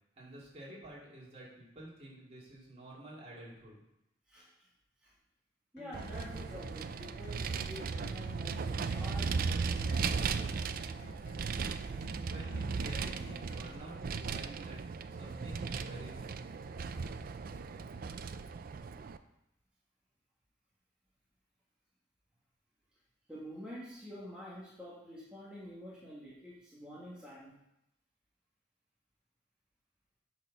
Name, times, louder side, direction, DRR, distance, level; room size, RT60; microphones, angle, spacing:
voice 1, 0.1-3.8 12.1-14.8 15.1-16.4, right 1 dB, 35° right, -5 dB, 2.5 m, -50 dB
voice 2, 4.3-4.7 5.0-5.1 5.7-10.5 23.3-27.5, equal, 5° right, -8 dB, 1.6 m, -48 dB
Acoustic guitar, 5.8-13.8, left 2 dB, 65° left, 1.8 m, -54 dB
Vehicle, 5.9-19.2, right 5 dB, 50° right, 0.4 m, -37 dB
8.4 x 4.4 x 5.9 m, 0.85 s
head